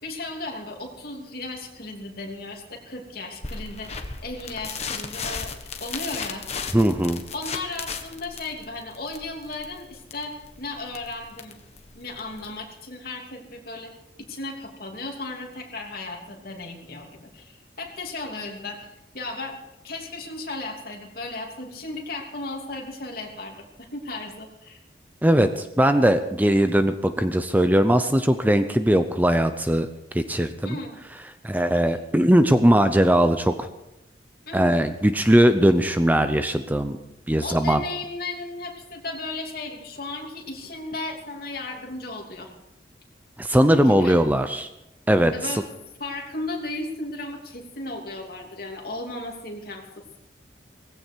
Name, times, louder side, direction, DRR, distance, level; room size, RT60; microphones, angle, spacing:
voice 1, 0.0-5.5 5.8-6.5 7.3-11.6 11.9-13.9 14.2-19.6 19.8-24.8 30.6-31.0 31.9-32.0 34.5-34.8 37.4-42.5 43.8-44.2 45.3-45.6 46.0-50.2, left 2 dB, 55° left, 1 dB, 2.9 m, -35 dB
sound 1, 3.4-12.6, left 5 dB, 35° left, 1.4 m, -36 dB
voice 2, 6.7-7.2 25.2-29.9 30.1-30.8 31.4-33.7 34.5-37.0 37.3-37.8 43.4-44.7 45.1-45.5, right 1 dB, 10° right, 9 dB, 0.6 m, -20 dB
18.0 x 16.0 x 4.6 m, 0.88 s
head